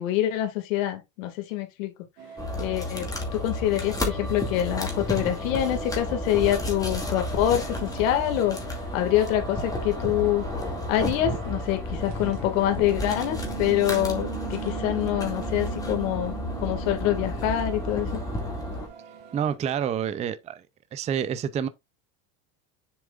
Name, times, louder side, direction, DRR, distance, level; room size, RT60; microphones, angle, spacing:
voice 1, 0.0-1.9 2.6-8.6 8.9-10.4 10.9-18.2, left 12 dB, 90° left, 2.1 m, -26 dB
sound 1, 2.2-19.6, right 9 dB, 90° right, 2.2 m, -42 dB
sound 2, 2.4-18.9, left 1 dB, 10° left, 2.2 m, -32 dB
voice 2, 19.3-20.6 20.9-21.7, right 8 dB, 20° right, 0.4 m, -28 dB
7.1 x 7.0 x 2.4 m
cardioid pair, 155°, 39 cm